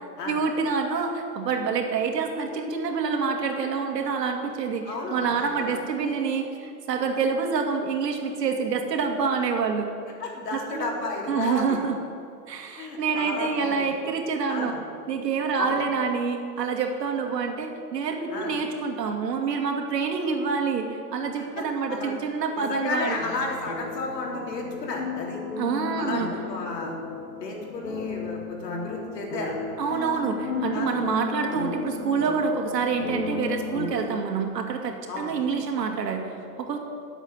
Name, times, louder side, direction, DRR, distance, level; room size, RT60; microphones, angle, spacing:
voice 1, 0.3-9.9 10.5-10.9 11.3-12.0 12.5-14.7 15.1-23.2 25.6-26.3 29.8-36.8, right 5 dB, 80° right, 3 dB, 2.6 m, -27 dB
voice 2, 4.8-5.8 10.2-11.8 12.7-13.9 14.5-14.8 15.6-15.8 18.3-18.5 21.4-22.1 22.6-25.4 26.0-26.9 27.4-29.5 30.7-31.0 35.1-35.4, left 3 dB, 80° left, -1 dB, 3.7 m, -33 dB
sound 1, 23.2-33.9, left 5 dB, 55° left, 3.2 m, -34 dB
12.5 x 8.1 x 9.6 m, 2.3 s
supercardioid pair, 170°, 48 cm